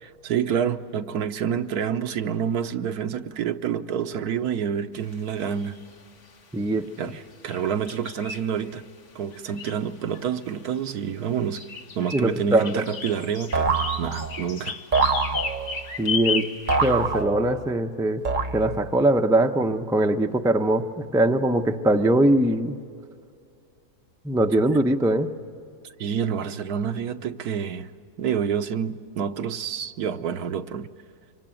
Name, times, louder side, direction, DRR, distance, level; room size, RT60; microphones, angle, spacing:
voice 1, 0.0-5.8 7.0-8.8 9.1-11.6 12.0-13.7 14.0-14.8 26.0-27.9 28.2-30.9, right 8 dB, 75° right, 1.3 m, -28 dB
sound 1, 5.4-5.9 7.1-7.2 7.5-8.8 9.3-10.7 11.3-17.2, left 5 dB, 70° left, 2.0 m, -34 dB
voice 2, 6.5-6.9 12.1-12.8 16.0-16.5 16.8-18.2 18.5-22.8 24.2-25.3, right 1 dB, 5° right, 0.3 m, -21 dB
sound 2, 13.5-14.5 14.9-15.9 16.7-17.7 18.2-19.0, right 4 dB, 40° right, 0.9 m, -25 dB
25.5 x 23.5 x 9.0 m
omnidirectional pair, 1.7 m